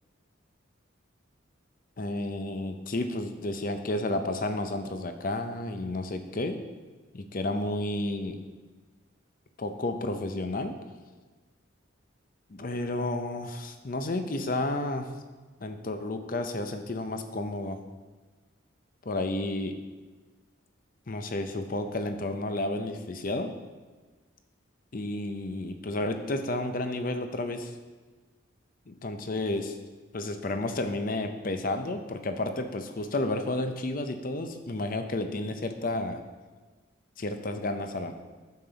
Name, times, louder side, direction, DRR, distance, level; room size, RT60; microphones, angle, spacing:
voice 1, 2.0-6.6 7.1-8.4 9.6-10.7 12.5-15.1 15.6-17.8 19.0-19.7 21.1-23.5 24.9-27.7 28.9-29.8 30.1-36.2 37.2-38.1, left 2 dB, 45° left, 7 dB, 0.6 m, -31 dB
9.3 x 6.8 x 4.0 m, 1.3 s
head